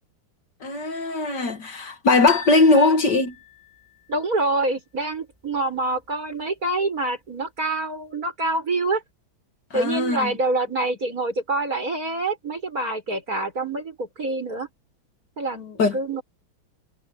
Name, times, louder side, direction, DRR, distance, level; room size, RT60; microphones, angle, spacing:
voice 1, 0.6-3.3 9.7-10.3 15.8-16.0, left 3 dB, 60° left, 2.3 m, -20 dB
sound 1, 2.3-4.2, left 4 dB, 5° right, 7.0 m, -39 dB
voice 2, 4.1-9.0 9.7-14.7 15.4-16.2, right 2 dB, 45° right, 7.4 m, -26 dB
omnidirectional pair, 2.1 m